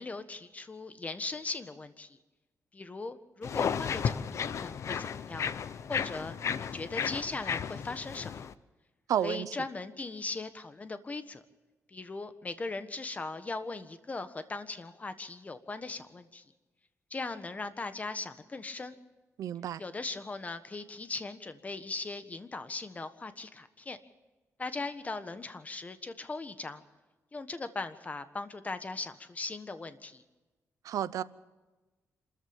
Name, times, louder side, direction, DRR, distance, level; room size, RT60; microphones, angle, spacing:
voice 1, 0.0-2.2 2.7-5.5 5.9-8.5 9.2-11.4 11.9-16.4 17.1-18.9 19.8-24.0 24.6-26.8 27.3-30.2, left 3 dB, 25° left, 1.4 m, -39 dB
sound 1, 3.4-8.5, left 7 dB, 60° left, 0.8 m, -34 dB
voice 2, 9.1-9.5 19.4-19.8 30.8-31.2, right 10 dB, 90° right, 0.8 m, -31 dB
27.0 x 14.0 x 7.2 m
wide cardioid pair, 130°, 6 cm